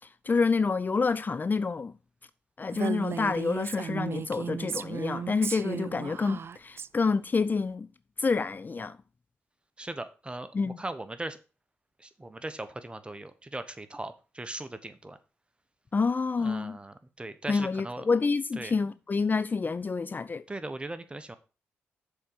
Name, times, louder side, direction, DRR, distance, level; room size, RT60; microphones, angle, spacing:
voice 1, 0.3-1.9 2.6-7.9 8.2-9.0 10.5-10.8 15.9-16.8 17.5-20.4, left 4 dB, 35° left, 0.4 m, -28 dB
Female speech woman speaking, 2.7-6.9, right 7 dB, 50° right, 0.3 m, -35 dB
voice 2, 9.8-11.4 12.0-15.2 16.4-18.1 18.6-18.8 20.5-21.4, right 2 dB, 20° right, 1.2 m, -39 dB
6.7 x 4.5 x 6.7 m
supercardioid pair, 50°, 5 cm